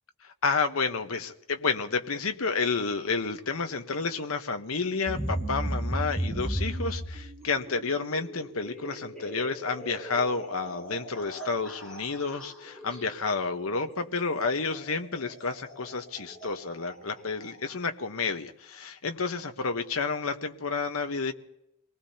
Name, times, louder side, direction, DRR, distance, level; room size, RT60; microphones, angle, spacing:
voice 1, 0.4-21.3, left 4 dB, 85° left, 6 dB, 1.1 m, -30 dB
sound 1, 5.1-17.7, equal, 5° left, 5.3 m, -37 dB
25.5 x 19.5 x 2.9 m, 0.79 s
head